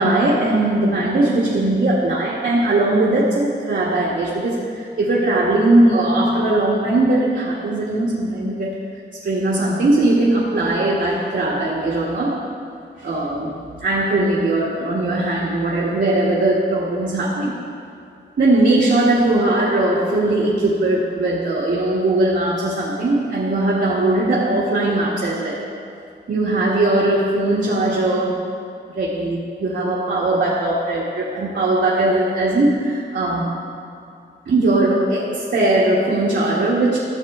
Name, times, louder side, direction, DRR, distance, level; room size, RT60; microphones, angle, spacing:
voice 1, 0.0-8.8 9.1-12.4 13.0-17.6 18.4-25.6 26.3-28.4 28.9-33.6 34.5-37.0, right 2 dB, 75° right, -6 dB, 1.4 m, -19 dB
14.0 x 7.4 x 3.6 m, 2.5 s
wide cardioid pair, 120°, 18 cm